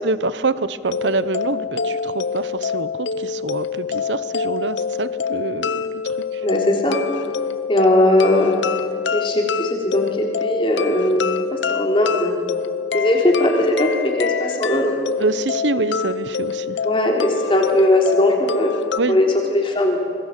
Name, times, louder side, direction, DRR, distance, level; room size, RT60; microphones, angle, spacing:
voice 1, 0.0-6.0 6.3-6.5 15.2-16.8 19.0-19.2, right 3 dB, 80° right, 15 dB, 0.9 m, -25 dB
sound 1, 0.8-19.0, left 6 dB, 85° left, 0.7 m, -26 dB
voice 2, 6.4-7.0 7.7-8.6 9.1-12.3 12.9-14.9 16.8-18.8 19.1-20.0, left 1 dB, 30° left, 1 dB, 3.7 m, -19 dB
26.0 x 22.0 x 7.6 m, 2.3 s
head